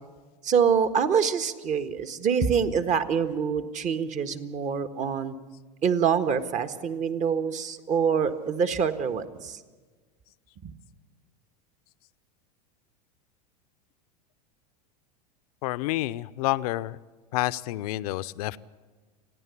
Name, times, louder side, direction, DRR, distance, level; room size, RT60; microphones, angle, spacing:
voice 1, 0.4-5.3 5.8-9.6 10.6-10.7, right 7 dB, 35° right, 9 dB, 1.6 m, -25 dB
voice 2, 15.6-17.0 17.3-18.6, left 17 dB, 65° left, 16 dB, 0.7 m, -29 dB
29.5 x 10.5 x 8.4 m, 1.4 s
hypercardioid pair, 95°, 21 cm